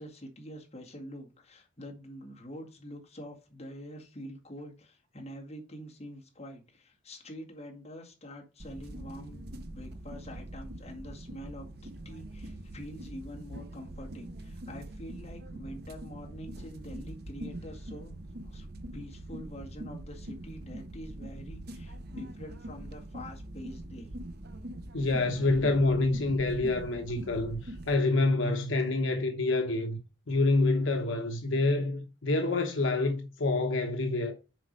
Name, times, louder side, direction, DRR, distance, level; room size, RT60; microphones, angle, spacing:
voice 1, 0.0-18.1 18.4-18.7 18.9-24.1, equal, 30° left, 2.0 m, -46 dB
sound 1, 8.6-27.9, right 1 dB, 50° right, 0.7 m, -43 dB
voice 2, 24.9-30.0 30.3-34.3, left 2 dB, 70° left, 0.9 m, -27 dB
7.5 x 4.8 x 5.2 m
head